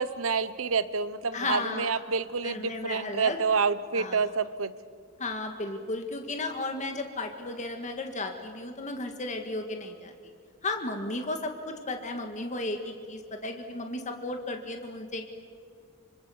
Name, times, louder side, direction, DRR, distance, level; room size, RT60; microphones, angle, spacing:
voice 1, 0.0-4.7, right 5 dB, 70° right, 15 dB, 0.9 m, -28 dB
voice 2, 1.3-1.9 2.4-3.4 4.0-4.2 5.2-10.1 10.6-15.2, left 2 dB, 35° left, 4 dB, 1.8 m, -34 dB
25.5 x 25.5 x 7.1 m, 2.1 s
head